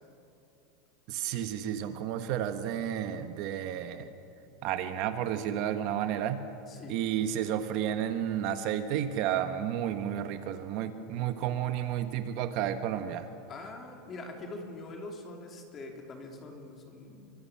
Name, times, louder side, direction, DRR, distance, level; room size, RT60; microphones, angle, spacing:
voice 1, 1.1-4.1 4.6-6.5 6.9-13.3, right 10 dB, 40° right, 8 dB, 1.3 m, -31 dB
voice 2, 13.5-17.3, left 2 dB, 20° left, 2 dB, 3.2 m, -43 dB
28.0 x 25.0 x 7.5 m, 2.8 s
supercardioid pair, 175°, 0 cm